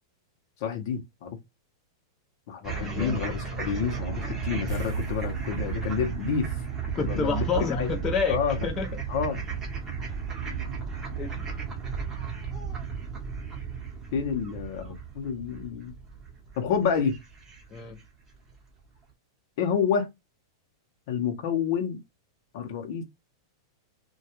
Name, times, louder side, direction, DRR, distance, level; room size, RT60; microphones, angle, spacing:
voice 1, 0.6-1.3 2.5-6.5 7.0-7.9 8.3-8.6 9.1-9.4 14.1-15.9 16.6-17.2 19.6-20.1 21.1-22.0 22.5-23.0, left 7 dB, 55° left, 0.7 m, -29 dB
sound 1, 2.6-18.0, right 6 dB, 20° right, 0.8 m, -34 dB
voice 2, 2.8-3.2 6.9-8.9 11.2-11.5 17.7-18.0, left 5 dB, 20° left, 0.5 m, -29 dB
sound 2, 4.7-7.5 7.8-7.9 10.8-10.9 11.3-11.4, right 2 dB, 85° right, 0.7 m, -40 dB
2.3 x 2.2 x 2.8 m
supercardioid pair, 145°, 2 cm